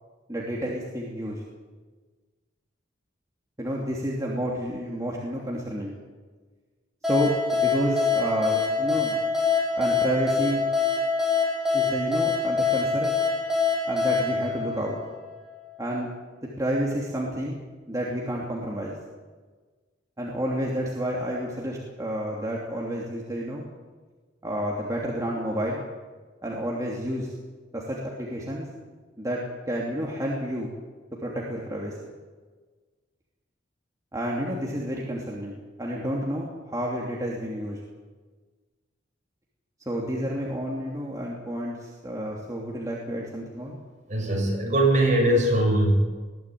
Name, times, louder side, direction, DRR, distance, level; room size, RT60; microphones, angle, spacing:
voice 1, 0.3-1.4 3.6-5.9 7.0-9.2 9.8-10.6 11.7-13.1 13.9-15.0 15.8-16.1 16.6-17.6 17.9-18.9 20.2-23.6 24.4-25.8 26.4-27.3 27.7-28.7 29.2-29.4 29.7-30.7 31.2-31.9 34.1-37.8 39.9-43.8, equal, 20° right, -3 dB, 3.0 m, -30 dB
sound 1, 7.0-15.5, left 4 dB, ahead, 7.4 m, -25 dB
voice 2, 44.1-45.9, right 1 dB, 40° right, 0 dB, 7.6 m, -21 dB
21.0 x 16.0 x 9.2 m, 1.4 s
head